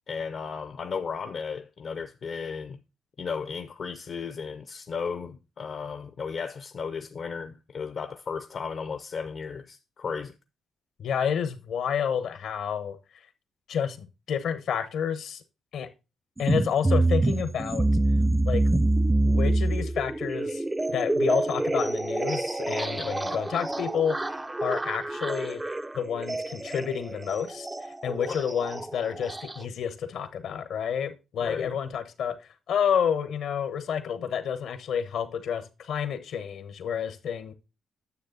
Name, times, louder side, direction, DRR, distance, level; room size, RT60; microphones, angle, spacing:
voice 1, 0.1-2.8 3.2-10.3 23.0-23.1 28.3-28.4 31.4-31.8, left 5 dB, 50° left, 0.6 m, -35 dB
voice 2, 11.0-13.0 13.7-15.4 15.7-15.9 16.4-17.9 18.4-18.6 19.2-25.6 25.9-32.4 32.7-37.5, left 8 dB, 70° left, 1.1 m, -30 dB
sound 1, 16.4-29.7, right 2 dB, 15° right, 0.4 m, -27 dB
9.6 x 6.7 x 3.9 m
cardioid pair, 90°, 0 cm